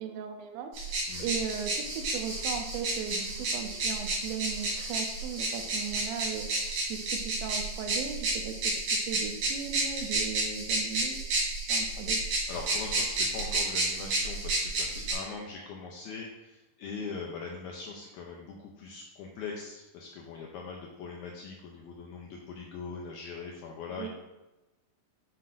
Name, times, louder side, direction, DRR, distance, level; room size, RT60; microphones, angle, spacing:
voice 1, 0.0-11.2 11.7-12.2 24.0-24.1, right 7 dB, 90° right, 5 dB, 2.4 m, -37 dB
sound 1, 0.7-15.1, right 2 dB, 65° right, 3.3 m, -31 dB
voice 2, 12.5-24.1, left 4 dB, 80° left, -1 dB, 1.8 m, -41 dB
7.6 x 5.5 x 2.5 m, 1.0 s
omnidirectional pair, 4.0 m